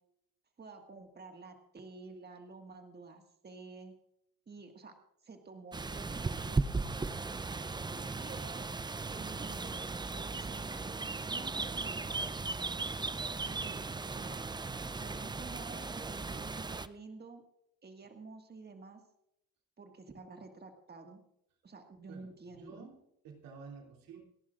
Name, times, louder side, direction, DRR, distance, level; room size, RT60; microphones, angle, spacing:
voice 1, 0.6-3.9 4.5-4.9 5.2-12.3 13.4-13.8 14.1-14.4 15.0-17.4 17.8-19.0 19.8-21.2 21.6-22.9, right 4 dB, 30° right, 4 dB, 1.8 m, -50 dB
sound 1, 5.7-16.9, right 3 dB, 15° right, 0.5 m, -37 dB
voice 2, 22.1-24.2, right 5 dB, 90° right, 0 dB, 3.0 m, -52 dB
29.0 x 11.0 x 2.5 m, 0.77 s
cardioid pair, 95°, 34 cm